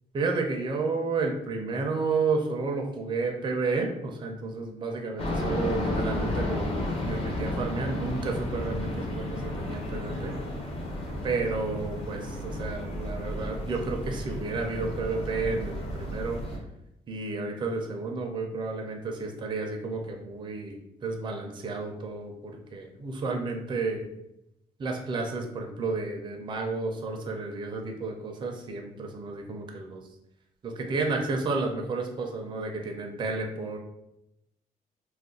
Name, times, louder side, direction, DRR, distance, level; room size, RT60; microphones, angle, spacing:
voice 1, 0.1-10.3 11.2-16.4 17.1-24.1 24.8-30.1 30.6-33.8, right 3 dB, 30° right, 2 dB, 0.5 m, -31 dB
sound 1, 5.2-16.6, left 1 dB, 40° left, 0.8 m, -32 dB
2.4 x 2.1 x 3.7 m, 0.84 s
cardioid pair, 125°, 15 cm